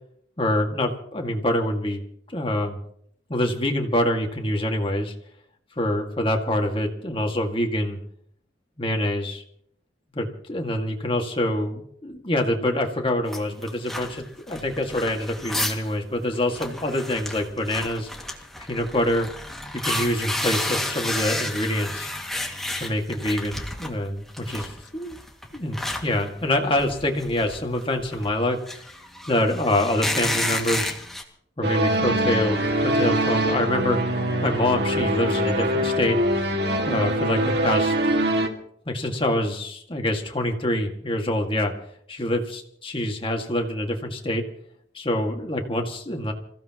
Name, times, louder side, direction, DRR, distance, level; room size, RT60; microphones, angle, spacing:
voice 1, 0.4-2.0 2.3-2.8 3.3-5.1 5.8-8.0 8.8-9.4 10.1-18.1 18.7-19.3 19.8-22.1 22.8-25.2 25.5-28.8 29.3-30.9 31.6-34.0 34.4-36.2 36.8-37.9 38.9-41.7 42.1-44.4 44.9-46.3, left 1 dB, 30° left, 3 dB, 2.1 m, -25 dB
sound 1, 13.3-15.9 16.2-16.3 16.5-23.9 24.3-31.2, left 1 dB, ahead, 2.2 m, -31 dB
sound 2, 31.6-38.5, right 1 dB, 60° right, 2.2 m, -23 dB
27.5 x 16.0 x 3.1 m, 0.66 s
head